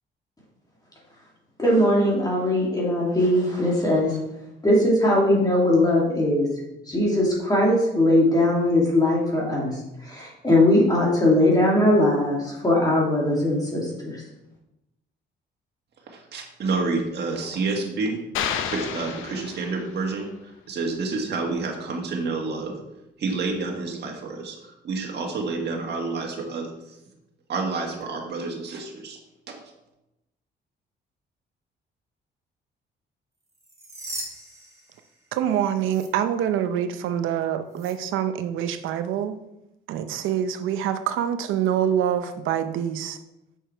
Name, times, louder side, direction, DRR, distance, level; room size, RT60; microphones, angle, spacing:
voice 1, 1.6-4.2 4.6-6.5 6.9-9.7 10.0-14.2, left 1 dB, 20° left, -4 dB, 2.6 m, -20 dB
voice 2, 16.1-18.2 18.7-22.8 23.2-27.0 27.5-29.2 29.5-29.6, right 3 dB, 60° right, 0 dB, 1.8 m, -29 dB
sound 1, 18.3-20.1, left 8 dB, 85° left, 0.7 m, -30 dB
sound 2, 33.5-35.5 35.8-36.1 37.7-37.9, right 1 dB, 15° right, 2.2 m, -39 dB
voice 3, 35.3-39.3 39.9-43.2, right 9 dB, 90° right, 10 dB, 0.7 m, -25 dB
6.7 x 6.4 x 4.5 m, 0.90 s
cardioid pair, 90°, 20 cm